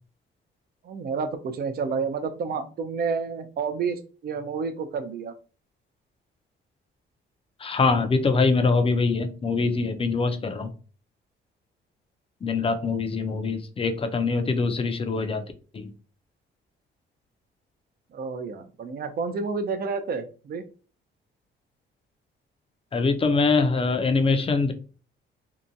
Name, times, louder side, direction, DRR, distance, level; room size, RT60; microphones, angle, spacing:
voice 1, 0.8-5.3 18.1-20.6, right 5 dB, 50° right, 0.5 m, -30 dB
voice 2, 7.6-10.7 12.4-15.5 15.7-15.9 22.9-24.7, left 4 dB, 30° left, 0.5 m, -23 dB
2.8 x 2.2 x 2.5 m
cardioid pair, 90°, 20 cm